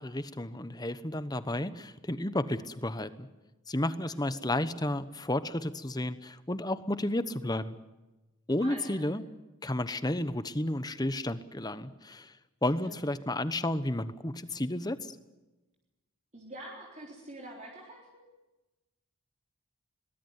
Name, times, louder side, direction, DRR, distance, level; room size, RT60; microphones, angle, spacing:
voice 1, 0.0-3.3 3.7-7.8 8.5-9.2 9.6-12.3 12.6-15.2, left 1 dB, 20° left, 13 dB, 1.0 m, -32 dB
voice 2, 4.0-4.6 8.6-9.1 12.8-13.0 16.3-18.2, right 1 dB, 30° right, -1 dB, 3.8 m, -46 dB
22.5 x 20.0 x 9.6 m, 1.1 s
head